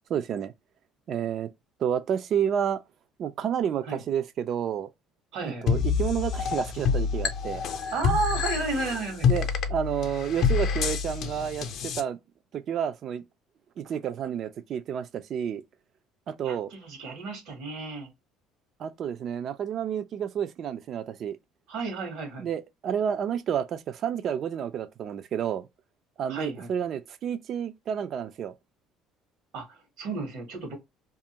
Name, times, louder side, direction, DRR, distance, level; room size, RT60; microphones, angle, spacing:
voice 1, 0.1-0.5 1.1-1.5 1.8-2.8 3.2-4.9 5.4-7.6 9.3-12.2 12.5-13.2 13.8-15.6 16.3-16.7 18.8-21.4 22.4-25.7 26.2-28.5, right 8 dB, 45° right, 0.3 m, -30 dB
voice 2, 5.3-5.7 7.9-9.3 16.4-18.1 21.7-22.5 26.3-26.7 29.5-30.8, right 3 dB, 75° right, 1.1 m, -32 dB
sound 1, 5.7-12.0, left 6 dB, 50° left, 0.5 m, -27 dB
2.5 x 2.4 x 2.8 m
cardioid pair, 150°, 0 cm